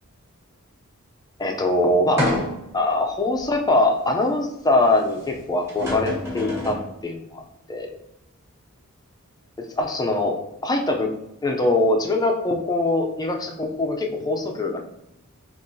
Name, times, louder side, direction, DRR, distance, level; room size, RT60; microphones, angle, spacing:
voice 1, 1.4-2.3 2.7-6.8 7.0-7.4 7.7-7.9 9.6-10.4 10.6-11.1 11.4-14.8, left 2 dB, 20° left, 2 dB, 0.5 m, -22 dB
sound 1, 2.2-2.8 3.4-3.5 5.3-5.4 5.7-6.9, left 1 dB, 10° right, 1.3 m, -27 dB
5.4 x 3.0 x 2.7 m, 0.85 s
head